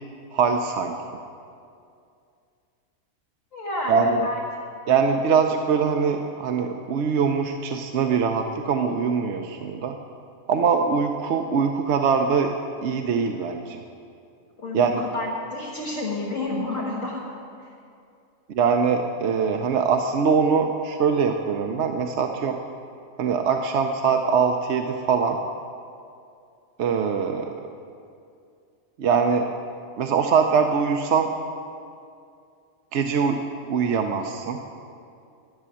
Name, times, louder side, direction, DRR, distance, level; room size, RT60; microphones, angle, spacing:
voice 1, 0.3-1.0 3.9-4.3 4.9-10.0 10.5-12.5 12.8-13.8 14.7-15.0 18.5-22.6 23.2-25.4 26.8-27.6 29.0-29.5 30.0-31.3 32.9-34.6, right 6 dB, 65° right, 4 dB, 0.9 m, -22 dB
voice 2, 3.5-4.4 14.6-17.3, left 2 dB, 70° left, -4 dB, 1.8 m, -30 dB
11.0 x 7.4 x 9.7 m, 2.4 s
omnidirectional pair, 1.4 m